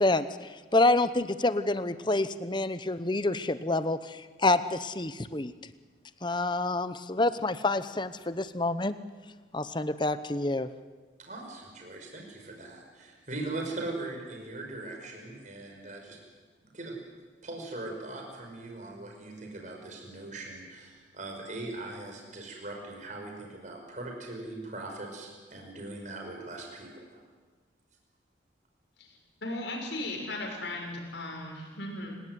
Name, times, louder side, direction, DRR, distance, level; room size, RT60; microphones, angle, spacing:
voice 1, 0.0-5.5 6.2-9.0 9.5-10.7, left 2 dB, 25° left, 12 dB, 0.9 m, -27 dB
voice 2, 11.2-16.2 16.6-17.0 17.4-27.1, right 2 dB, 40° right, 1 dB, 5.7 m, -40 dB
voice 3, 29.0-32.2, left 2 dB, 65° left, 1 dB, 6.6 m, -37 dB
28.5 x 18.0 x 9.6 m, 1.4 s
head